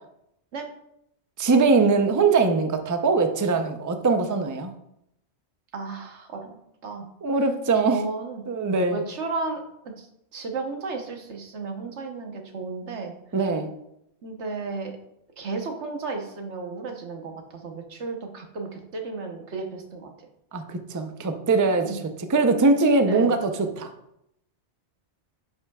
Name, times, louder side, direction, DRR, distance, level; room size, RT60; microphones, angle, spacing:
voice 1, 1.4-4.7 7.2-8.0 8.5-9.0 13.3-13.7 20.5-23.9, right 4 dB, 25° right, 6 dB, 0.5 m, -22 dB
voice 2, 5.7-6.6 6.8-7.1 7.8-8.4 8.9-10.1 10.3-13.1 14.2-15.0 15.4-20.1 21.9-22.0 23.1-23.3, right 3 dB, 85° right, 3 dB, 1.3 m, -33 dB
9.7 x 5.7 x 2.3 m, 0.78 s
omnidirectional pair, 1.1 m